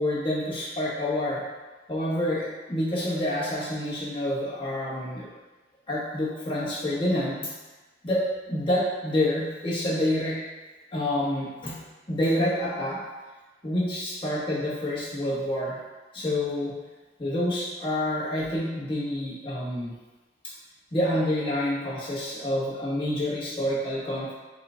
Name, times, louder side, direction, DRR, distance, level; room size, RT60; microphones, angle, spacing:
voice 1, 0.0-1.4 1.9-5.3 5.9-7.5 8.0-10.4 10.9-11.8 12.1-13.0 13.6-15.8 16.1-16.7 17.2-19.9 20.9-24.4, left 1 dB, 30° left, -7 dB, 1.2 m, -28 dB
5.6 x 2.3 x 3.7 m, 1.2 s
head